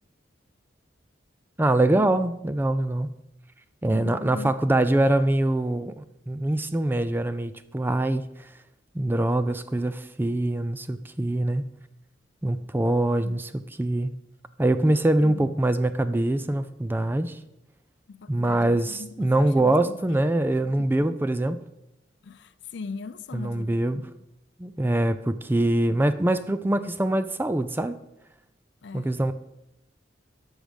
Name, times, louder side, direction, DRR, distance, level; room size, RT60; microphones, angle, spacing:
voice 1, 1.6-3.1 3.8-8.5 8.9-11.6 12.4-13.5 13.8-14.1 14.6-17.4 18.3-21.6 23.3-24.0 24.6-27.9 28.9-29.3, right 1 dB, 10° right, 0.4 m, -24 dB
voice 2, 3.9-4.5 11.6-11.7 13.2-13.4 15.2-15.5 18.1-20.2 20.6-21.1 22.2-24.0 28.8-29.2, left 4 dB, 65° left, 0.5 m, -40 dB
11.5 x 6.4 x 5.1 m
head